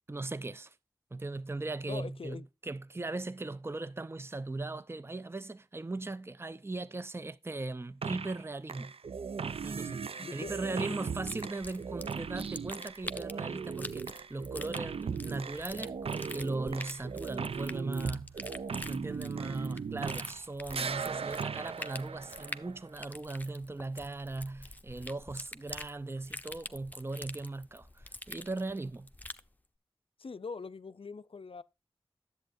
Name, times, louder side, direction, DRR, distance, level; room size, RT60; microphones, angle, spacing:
voice 1, 0.1-0.7 1.1-9.0 9.6-18.6 18.9-29.1, right 2 dB, 25° right, 0.5 m, -38 dB
voice 2, 1.9-2.5 10.2-11.0 30.2-31.6, left 4 dB, 65° left, 0.6 m, -42 dB
sound 1, 8.0-8.4 8.7-20.4 20.7-22.9, right 6 dB, 75° right, 0.4 m, -38 dB
sound 2, 11.2-29.5, left 1 dB, 15° left, 0.7 m, -46 dB
10.5 x 8.0 x 2.6 m
cardioid pair, 40°, 10 cm